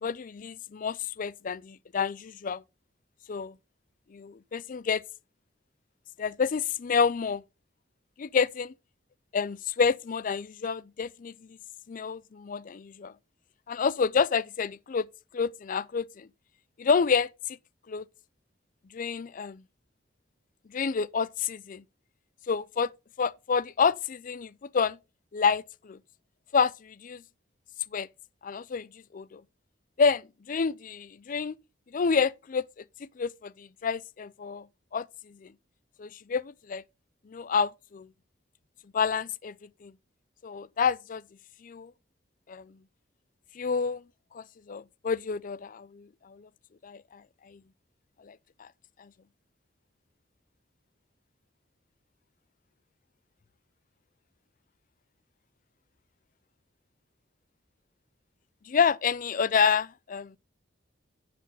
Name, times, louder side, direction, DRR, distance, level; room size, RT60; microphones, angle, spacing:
voice 1, 0.0-2.6 3.3-3.5 4.1-5.0 6.2-7.4 8.2-8.7 9.3-11.3 11.9-13.1 13.7-15.1 15.3-16.3 16.8-17.3 17.9-18.0 18.9-19.6 20.7-21.8 22.5-22.9 23.2-25.0 25.3-26.0 26.5-27.2 27.9-28.1 28.4-28.9 29.1-29.4 30.0-30.2 30.5-31.5 31.9-32.6 33.2-34.7 34.9-35.5 36.0-36.8 37.3-38.1 38.9-39.5 39.8-39.9 40.4-41.2 41.6-41.9 42.5-42.7 43.6-44.0 44.3-46.5 46.8-47.2 47.5-47.6 48.2-48.7 49.0-49.1 58.7-60.4, left 5 dB, 45° left, 0.4 m, -28 dB
10.0 x 4.3 x 5.6 m
head